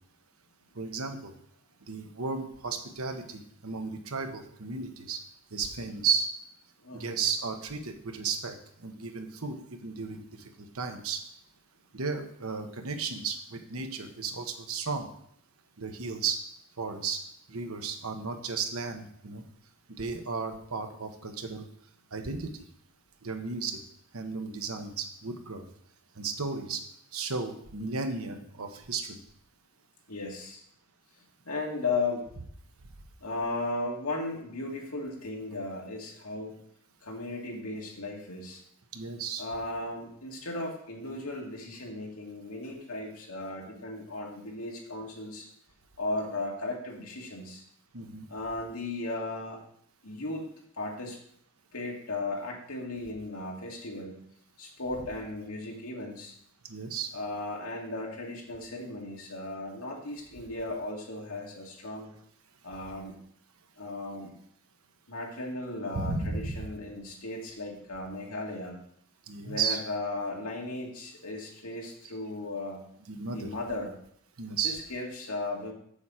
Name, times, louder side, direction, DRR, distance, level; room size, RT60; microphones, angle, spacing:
voice 1, 0.7-1.3 1.9-5.2 5.5-6.3 6.9-8.6 8.8-10.2 10.7-11.2 11.9-15.1 15.8-16.4 16.8-17.2 17.5-19.4 20.0-21.7 22.1-22.7 23.2-23.8 24.1-25.6 26.2-26.8 27.1-29.2 38.9-39.4 47.9-48.2 56.7-57.1 65.9-66.7 69.3-69.8 73.1-73.5 74.4-74.8, right 5 dB, 80° right, 5 dB, 1.2 m, -34 dB
voice 2, 6.8-7.2 30.1-30.6 31.4-32.3 33.2-36.5 37.0-38.6 39.4-45.4 46.0-47.6 48.3-49.6 50.0-50.4 50.8-51.2 51.7-54.1 54.6-56.3 57.1-62.1 62.6-63.1 63.8-64.3 65.1-68.8 69.4-72.8 73.3-73.9 74.6-75.7, left 2 dB, 90° left, -1 dB, 2.2 m, -36 dB
7.3 x 7.0 x 4.9 m, 0.69 s
head